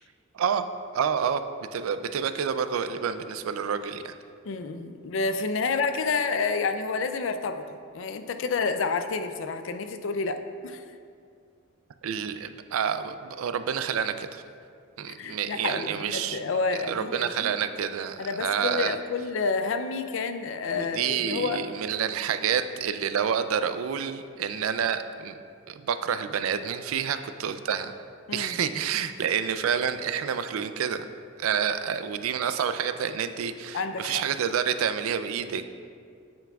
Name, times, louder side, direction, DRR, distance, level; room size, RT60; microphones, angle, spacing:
voice 1, 0.9-4.1 12.0-14.4 15.0-16.4 16.8-19.0 20.7-25.4 25.7-27.9 28.3-31.0 31.4-35.7, right 7 dB, 90° right, 10 dB, 0.4 m, -28 dB
voice 2, 4.4-7.6 7.9-10.8 15.1-17.5 18.2-21.6 28.3-28.6 33.7-34.2, left 4 dB, 65° left, 9 dB, 0.4 m, -29 dB
9.1 x 6.9 x 2.3 m, 2.3 s
head